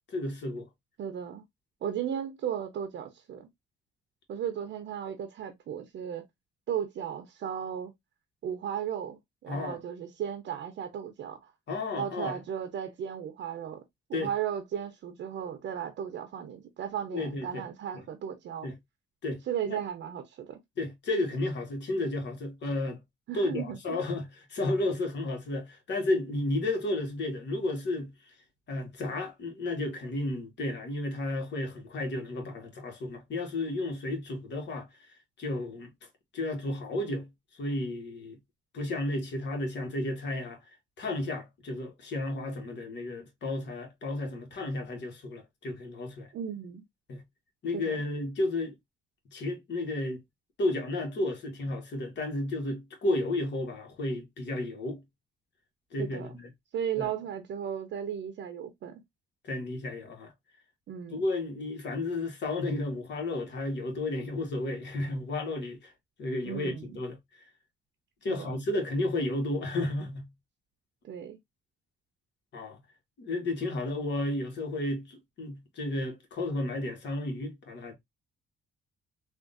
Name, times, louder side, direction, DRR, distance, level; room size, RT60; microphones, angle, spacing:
voice 1, 0.1-0.7 9.5-9.8 11.7-12.4 14.1-14.3 17.1-17.6 17.9-18.0 18.6-18.8 19.2-19.8 20.8-23.0 23.3-28.1 28.7-35.9 36.3-38.4 38.7-40.6 41.0-46.3 47.1-47.2 47.6-48.7 49.3-50.2 50.6-55.0 55.9-56.5 57.0-57.1 59.4-60.3 61.1-65.9 66.2-67.2 68.2-70.3 72.5-72.8 73.2-77.9, left 2 dB, 60° left, 1.4 m, -32 dB
voice 2, 1.0-1.4 1.8-3.5 4.3-6.2 6.7-7.9 8.4-11.5 12.0-13.8 14.1-18.7 19.5-20.6 23.3-24.0 46.3-46.8 47.7-48.0 56.0-56.3 56.7-59.0 60.9-61.2 66.4-67.0 68.2-68.5 71.0-71.4, right 9 dB, 65° right, 0.7 m, -35 dB
3.5 x 2.5 x 2.5 m
cardioid pair, 90°, 20 cm